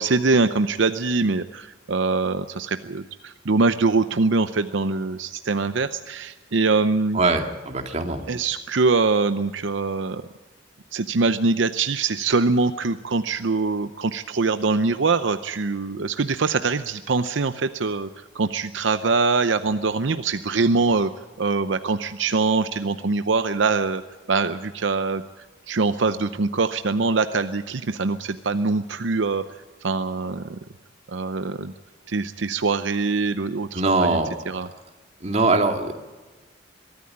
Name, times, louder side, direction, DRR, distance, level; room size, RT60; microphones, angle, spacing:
voice 1, 0.0-7.2 8.3-10.2 10.9-21.1 21.4-24.0 24.3-25.2 25.7-29.4 29.8-30.6 31.1-31.7 32.1-34.2 34.5-34.7, right 3 dB, 75° right, 10 dB, 0.7 m, -23 dB
voice 2, 7.1-8.3 33.7-34.3 35.2-35.9, right 3 dB, 35° right, 4 dB, 2.2 m, -22 dB
23.0 x 13.5 x 8.6 m, 1.3 s
head